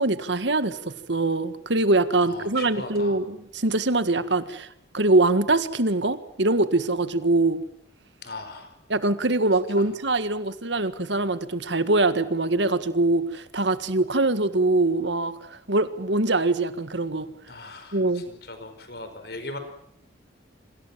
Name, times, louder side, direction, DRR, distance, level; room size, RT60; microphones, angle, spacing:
voice 1, 0.0-4.7 4.9-7.6 8.9-17.3 17.9-18.2, right 2 dB, 75° right, 12 dB, 1.8 m, -23 dB
voice 2, 2.2-3.2 8.2-8.7 9.8-9.9 17.5-19.6, left 2 dB, 55° left, 9 dB, 5.1 m, -39 dB
27.5 x 25.5 x 7.5 m, 0.69 s
head